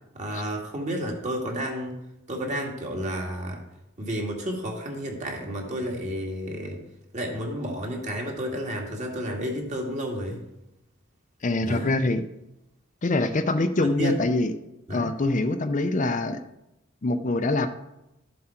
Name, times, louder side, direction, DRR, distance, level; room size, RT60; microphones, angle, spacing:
voice 1, 0.1-2.0 2.3-3.6 4.0-6.8 7.1-10.4 11.6-12.0 13.8-14.1 14.9-15.1, equal, 35° right, 0 dB, 2.1 m, -31 dB
voice 2, 11.4-12.3 13.0-14.5 14.9-16.4 17.0-17.7, left 2 dB, 40° left, 8 dB, 0.6 m, -24 dB
12.5 x 7.5 x 4.4 m, 0.89 s
head